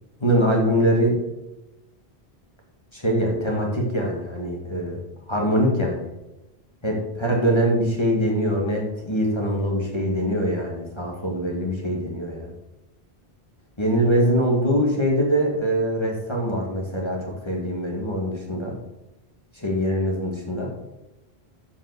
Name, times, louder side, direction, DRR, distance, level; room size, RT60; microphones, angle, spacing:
voice 1, 0.2-1.2 2.9-5.0 5.3-6.1 6.8-12.5 13.8-18.7 19.5-20.7, equal, 25° left, -1 dB, 1.8 m, -23 dB
7.3 x 5.4 x 6.6 m, 0.95 s
omnidirectional pair, 1.1 m